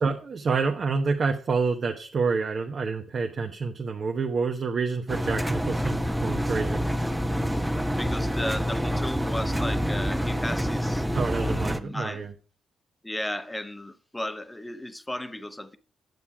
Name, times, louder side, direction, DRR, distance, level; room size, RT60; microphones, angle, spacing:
voice 1, 0.0-6.9 11.1-12.3, right 4 dB, 55° right, 1.0 m, -28 dB
Engine, 5.1-11.8, equal, 10° right, 0.8 m, -27 dB
voice 2, 8.0-11.1 11.3-12.2 13.0-15.8, left 1 dB, 15° left, 1.0 m, -35 dB
9.5 x 7.1 x 4.7 m
supercardioid pair, 50°, 0 cm